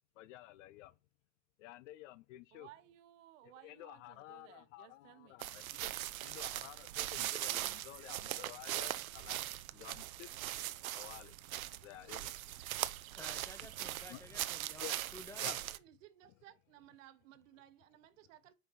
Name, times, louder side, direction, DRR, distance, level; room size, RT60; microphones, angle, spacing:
voice 1, 0.2-0.9 1.6-2.7 3.4-5.9 6.2-9.5 9.7-10.3 10.9-11.4 11.8-12.4 14.1-14.3 14.8-15.1 15.4-15.6, left 15 dB, 65° left, 0.6 m, -52 dB
voice 2, 2.5-5.4 15.3-18.5, right 13 dB, 65° right, 1.0 m, -60 dB
sound 1, 5.4-15.8, right 14 dB, 90° right, 0.6 m, -40 dB
voice 3, 13.1-15.6, left 2 dB, 5° left, 0.6 m, -54 dB
5.4 x 4.5 x 5.7 m
hypercardioid pair, 100°, 41 cm